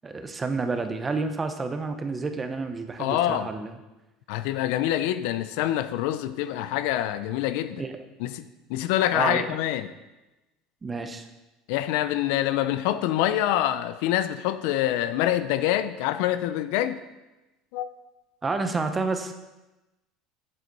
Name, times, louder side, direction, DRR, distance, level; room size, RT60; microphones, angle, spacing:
voice 1, 0.0-3.8 7.8-8.0 9.1-9.5 10.8-11.3 18.4-19.3, right 3 dB, 15° right, 7 dB, 0.6 m, -29 dB
voice 2, 3.0-3.5 4.3-7.8 8.2-9.9 11.7-17.0 17.7-17.9, left 13 dB, 75° left, 12 dB, 0.5 m, -26 dB
7.9 x 7.7 x 4.0 m, 1.0 s
cardioid pair, 155°, 0 cm